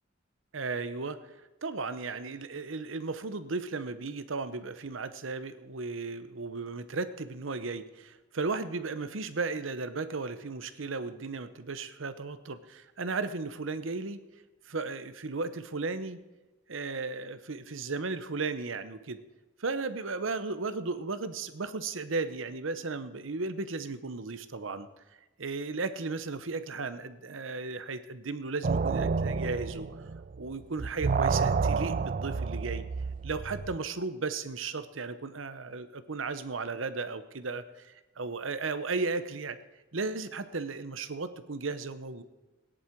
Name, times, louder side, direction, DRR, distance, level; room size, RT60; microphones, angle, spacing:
voice 1, 0.5-1.2 1.6-14.2 14.7-16.2 16.7-19.2 19.6-24.9 25.4-29.9 30.4-32.8 33.2-39.6 39.9-42.2, right 3 dB, 75° right, 12 dB, 0.9 m, -35 dB
sound 1, 28.6-30.5 30.8-33.8, right 5 dB, 40° right, 0.4 m, -30 dB
18.0 x 10.5 x 4.6 m, 1.1 s
head